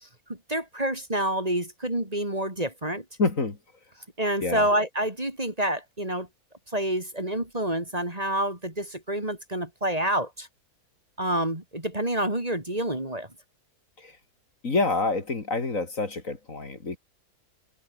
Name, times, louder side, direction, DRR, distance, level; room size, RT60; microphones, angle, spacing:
voice 1, 0.3-3.0 4.2-6.3 6.7-10.5 11.2-13.3, right 1 dB, 25° right, 3.6 m, -28 dB
voice 2, 3.2-3.6 4.4-4.7 14.0-14.1 14.6-17.0, left 3 dB, 55° left, 3.4 m, -27 dB
omnidirectional pair, 1.7 m